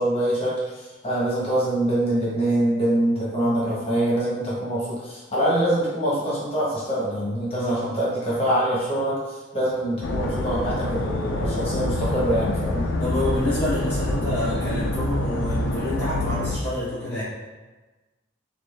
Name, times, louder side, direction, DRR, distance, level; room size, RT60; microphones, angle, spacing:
voice 1, 0.0-12.9, right 1 dB, 30° left, -7 dB, 1.2 m, -24 dB
voice 2, 3.4-3.8 7.6-8.0 8.3-8.4 13.0-17.2, left 1 dB, 10° left, -13 dB, 0.9 m, -28 dB
sound 1, 10.0-16.6, left 1 dB, 75° left, 0.5 m, -26 dB
4.3 x 2.6 x 3.3 m, 1.2 s
head